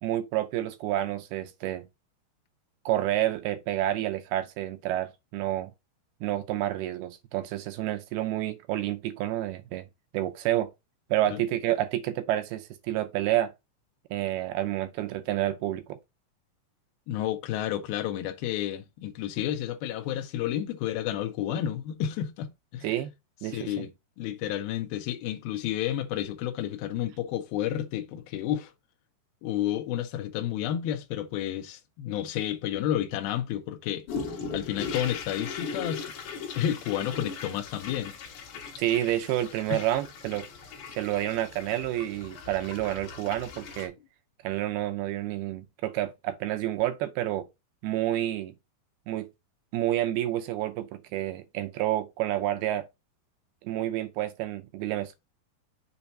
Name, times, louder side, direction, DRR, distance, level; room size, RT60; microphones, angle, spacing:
voice 1, 0.0-1.8 2.9-5.7 6.2-9.9 10.1-10.7 11.1-13.5 14.1-16.0 22.8-23.1 23.4-23.9 38.8-40.5 41.0-43.9 44.4-47.5 47.8-48.5 49.1-49.3 49.7-52.8 53.6-55.1, right 13 dB, 80° right, 2.4 m, -29 dB
voice 2, 17.1-22.9 23.5-23.9 24.2-28.7 29.4-36.1 36.6-38.1 39.7-39.8, left 11 dB, 75° left, 2.4 m, -31 dB
sound 1, 34.1-43.9, left 5 dB, 60° left, 2.4 m, -39 dB
7.0 x 2.8 x 5.3 m
omnidirectional pair, 4.9 m